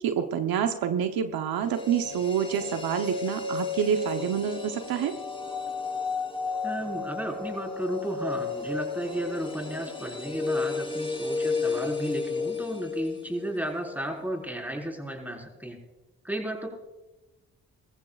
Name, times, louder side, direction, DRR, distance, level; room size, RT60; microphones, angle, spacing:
voice 1, 0.0-5.1, right 8 dB, 75° right, 6 dB, 1.0 m, -27 dB
sound 1, 1.6-13.7 14.0-14.1, left 4 dB, 15° left, 3.2 m, -33 dB
voice 2, 6.6-15.8 16.2-16.7, right 1 dB, 5° right, 1 dB, 4.7 m, -33 dB
22.0 x 14.5 x 2.5 m, 1.1 s
supercardioid pair, 55°, 36 cm